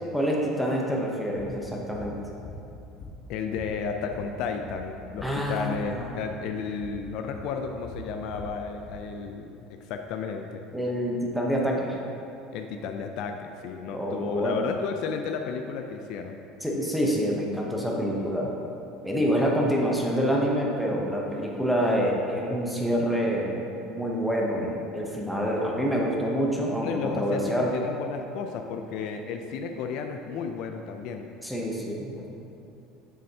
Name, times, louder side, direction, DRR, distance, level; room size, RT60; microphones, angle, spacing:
voice 1, 0.1-2.2 5.2-6.1 10.7-12.0 13.9-14.7 16.6-18.5 19.0-27.7 31.4-32.3, equal, ahead, -3 dB, 0.7 m, -27 dB
sound 1, 1.4-1.6 1.9-2.1 2.5-3.3 3.6-5.4 5.7-5.9 6.2-6.4 6.8-7.0 7.3-9.0, left 2 dB, 35° left, 0.8 m, -43 dB
voice 2, 3.3-10.6 12.5-16.4 26.8-31.3, left 5 dB, 55° left, 5 dB, 0.4 m, -33 dB
6.8 x 6.4 x 2.8 m, 2.7 s
cardioid pair, 160°, 0 cm